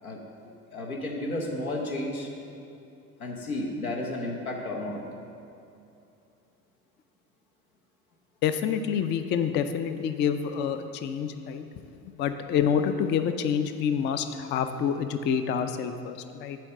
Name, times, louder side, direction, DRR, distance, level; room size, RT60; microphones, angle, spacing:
voice 1, 0.7-2.3 3.2-5.0, left 1 dB, 85° left, -1 dB, 0.9 m, -32 dB
voice 2, 8.4-11.6 12.2-16.6, left 7 dB, 30° left, 9 dB, 0.4 m, -27 dB
7.5 x 4.5 x 6.4 m, 2.7 s
figure-of-eight pair, 60°, 41 cm